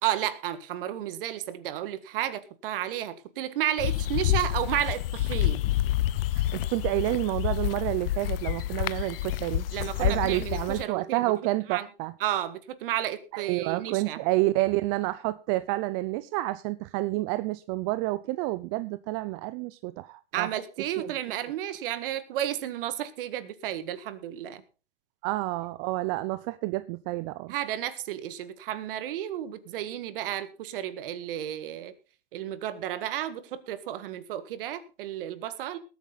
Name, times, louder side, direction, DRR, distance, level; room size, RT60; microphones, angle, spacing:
voice 1, 0.0-5.7 9.7-11.3 11.7-11.9 12.2-14.2 20.3-24.6 27.5-31.9 32.3-35.8, right 12 dB, 60° right, 1.8 m, -32 dB
sound 1, 3.8-10.8, left 14 dB, 65° left, 0.7 m, -28 dB
voice 2, 6.3-9.6 10.0-12.1 13.3-20.5 21.0-21.1 25.2-27.5, right 19 dB, 40° right, 0.6 m, -29 dB
19.5 x 8.5 x 4.0 m
hypercardioid pair, 120°, 31 cm